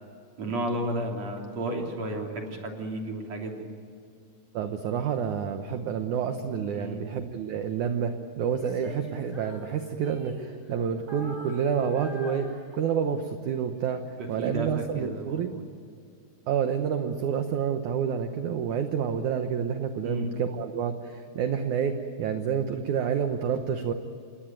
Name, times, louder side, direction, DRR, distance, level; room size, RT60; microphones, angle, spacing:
voice 1, 0.4-3.7 6.7-7.1 14.2-15.6 20.0-20.3, right 1 dB, 45° right, 1 dB, 4.0 m, -33 dB
voice 2, 4.5-15.5 16.5-23.9, right 7 dB, 65° right, 7 dB, 2.1 m, -29 dB
Female singing, 8.5-10.8 11.1-13.1, left 2 dB, 5° right, 5.2 m, -41 dB
28.0 x 20.5 x 9.1 m, 2.3 s
omnidirectional pair, 4.5 m